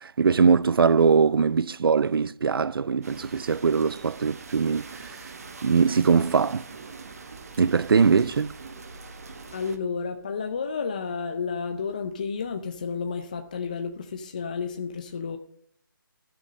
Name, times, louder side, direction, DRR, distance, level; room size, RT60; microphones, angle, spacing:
voice 1, 0.0-5.1 5.6-6.7 7.6-8.5, right 5 dB, 80° right, 0.4 m, -21 dB
sound 1, 3.0-9.8, right 4 dB, 45° right, 1.3 m, -43 dB
voice 2, 9.5-15.4, left 5 dB, 20° left, 0.4 m, -31 dB
13.0 x 6.4 x 6.4 m
hypercardioid pair, 170°, 12 cm